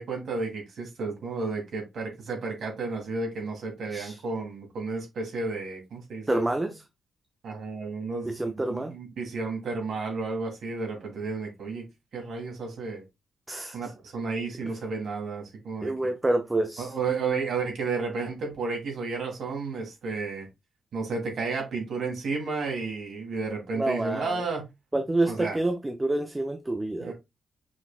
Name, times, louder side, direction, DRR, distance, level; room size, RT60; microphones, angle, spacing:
voice 1, 0.0-6.5 7.4-11.9 12.1-13.0 13.7-15.9 16.8-20.5 20.9-24.7 25.2-25.6 27.0-27.1, right 4 dB, 60° right, 1.9 m, -32 dB
voice 2, 6.3-6.7 8.2-8.9 13.5-13.9 15.8-16.9 23.7-24.4 24.9-27.1, right 2 dB, 10° right, 0.4 m, -28 dB
6.1 x 3.5 x 2.3 m
wide cardioid pair, 180°, 0 cm